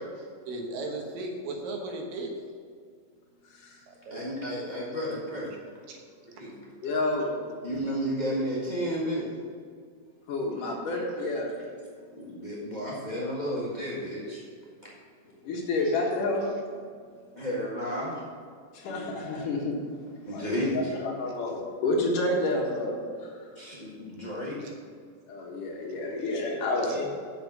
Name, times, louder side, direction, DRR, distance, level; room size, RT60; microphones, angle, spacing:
voice 1, 0.5-2.3 3.9-4.2 5.9-6.0 6.4-6.5 24.6-24.8 26.8-27.1, right 2 dB, 70° right, 2 dB, 2.9 m, -36 dB
voice 2, 4.1-5.5 6.3-9.3 12.1-14.4 15.8-15.9 17.3-18.1 20.2-20.9 23.5-24.6, equal, 85° left, -6 dB, 0.4 m, -32 dB
voice 3, 6.8-7.3 10.3-11.5 15.4-16.5 18.7-19.8 20.3-23.5 25.3-27.1, left 2 dB, 65° left, -1 dB, 3.0 m, -29 dB
7.5 x 7.2 x 7.5 m, 2.1 s
omnidirectional pair, 4.2 m